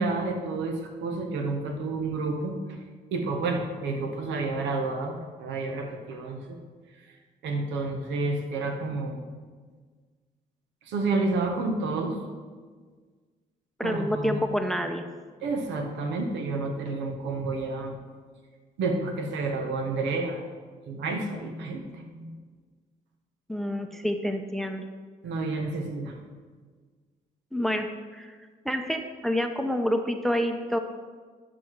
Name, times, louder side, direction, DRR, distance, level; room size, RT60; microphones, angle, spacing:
voice 1, 0.0-2.5 3.1-6.6 7.4-9.2 10.9-12.2 13.8-14.4 15.4-17.9 18.8-20.5 20.9-22.3 25.2-26.1, right 3 dB, 80° right, 3 dB, 1.2 m, -30 dB
voice 2, 13.8-15.0 23.5-24.9 27.5-28.4 28.6-30.8, equal, ahead, 6 dB, 0.7 m, -28 dB
10.0 x 6.2 x 4.6 m, 1.5 s
supercardioid pair, 60°, 18 cm